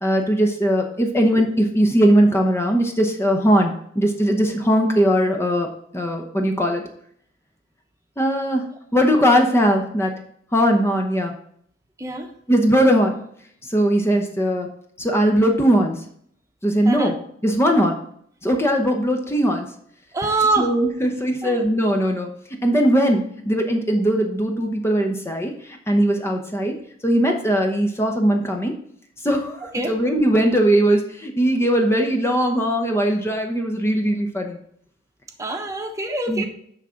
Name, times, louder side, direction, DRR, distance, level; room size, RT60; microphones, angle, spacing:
voice 1, 0.0-5.7 5.9-6.8 8.2-8.6 8.9-10.1 10.5-11.3 12.5-13.1 13.7-14.7 15.0-16.0 16.6-17.1 17.4-18.0 18.4-19.7 20.6-22.3 22.6-25.5 25.9-26.7 27.0-28.7 29.2-34.6 36.3-36.5, equal, 15° left, 3 dB, 0.8 m, -19 dB
voice 2, 20.1-20.7 21.4-21.6 29.7-29.9 35.4-36.5, right 3 dB, 15° right, 4 dB, 1.0 m, -24 dB
9.9 x 3.8 x 5.7 m, 0.65 s
head